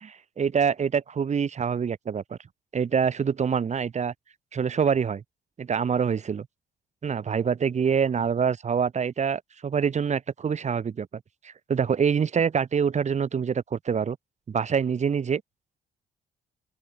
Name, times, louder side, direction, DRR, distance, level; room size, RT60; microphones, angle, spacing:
voice 1, 0.1-2.4 2.7-4.1 4.5-5.2 5.6-6.5 7.0-11.1 11.4-14.2 14.5-15.4, right 6 dB, 35° right, 0.8 m, -25 dB
open air
cardioid pair, 90°, 20 cm